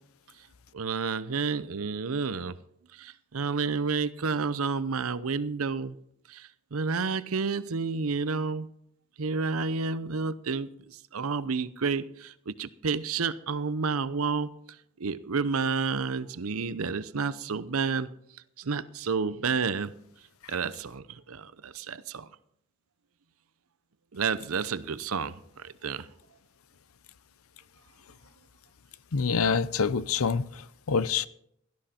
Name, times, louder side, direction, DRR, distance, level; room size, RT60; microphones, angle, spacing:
voice 1, 0.7-2.5 3.0-6.0 6.3-8.7 9.2-14.5 15.0-18.1 18.6-19.9 20.5-22.3 24.1-25.3 25.6-26.1, right 5 dB, 90° right, 0.7 m, -30 dB
voice 2, 29.1-31.3, left 5 dB, 85° left, 0.6 m, -26 dB
16.5 x 12.5 x 4.4 m
head